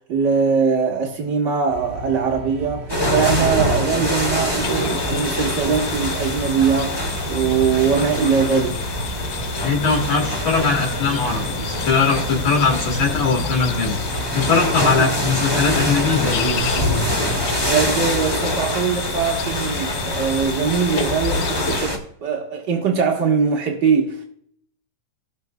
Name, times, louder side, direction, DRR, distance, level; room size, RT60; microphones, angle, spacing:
voice 1, 0.0-8.8 14.8-15.1 17.7-24.3, right 6 dB, 70° right, 1.0 m, -21 dB
sound 1, 1.7-17.9, right 1 dB, 20° right, 1.6 m, -33 dB
sound 2, 2.9-22.0, equal, 15° left, 1.0 m, -25 dB
sound 3, 4.6-21.9, left 7 dB, 85° left, 2.6 m, -31 dB
voice 2, 9.6-14.0 14.3-16.7, left 5 dB, 55° left, 2.7 m, -20 dB
19.0 x 6.6 x 2.3 m
omnidirectional pair, 4.0 m